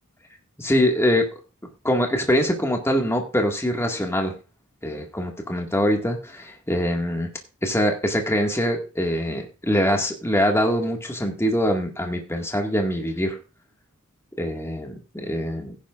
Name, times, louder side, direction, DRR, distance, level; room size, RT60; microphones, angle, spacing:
voice 1, 0.6-1.3 1.8-4.3 4.8-7.3 7.6-13.4 14.4-15.8, equal, 10° left, 2 dB, 2.1 m, -23 dB
16.0 x 10.5 x 2.6 m, 0.31 s
head